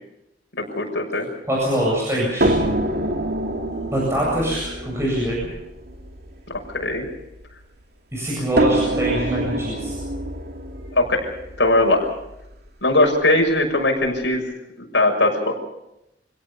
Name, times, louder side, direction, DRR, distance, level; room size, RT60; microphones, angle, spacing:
voice 1, 0.6-1.3 6.7-7.1 10.9-11.3 11.6-12.1 12.8-14.5 14.8-15.5, left 2 dB, 75° left, 1 dB, 6.7 m, -19 dB
voice 2, 1.5-2.5 3.9-5.4 8.1-9.9, equal, 15° right, -4 dB, 7.9 m, -23 dB
sound 1, 2.4-7.6 8.6-12.5 13.5-13.6 14.0-14.1, right 1 dB, 60° right, 2.6 m, -26 dB
27.5 x 17.5 x 7.0 m, 0.87 s
head